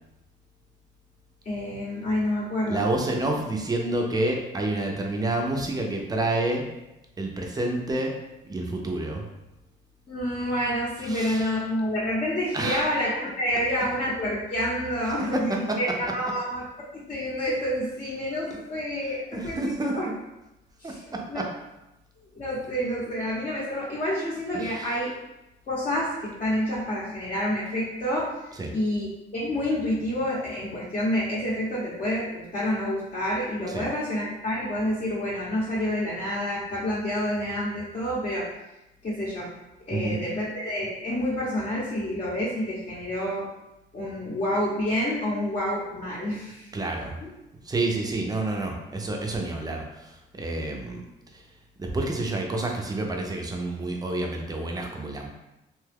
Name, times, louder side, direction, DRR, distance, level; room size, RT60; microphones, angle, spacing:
voice 1, 1.4-2.9 10.1-16.6 16.9-20.1 20.8-21.4 22.3-25.1 25.7-38.5 39.0-39.5 39.9-43.5 43.9-46.7 47.2-47.3, equal, 35° left, -7 dB, 0.8 m, -28 dB
voice 2, 2.7-6.6 7.2-8.1 8.5-9.2 11.0-11.6 12.5-12.9 15.1-15.8 19.0-20.0 20.8-21.5 24.5-24.9 28.5-28.7 33.7-33.9 39.9-40.2 46.7-47.1 47.6-51.0 51.3-51.4 51.8-55.3, right 2 dB, 20° right, 1 dB, 0.6 m, -29 dB
2.8 x 2.3 x 3.4 m, 0.95 s
cardioid pair, 90°, 20 cm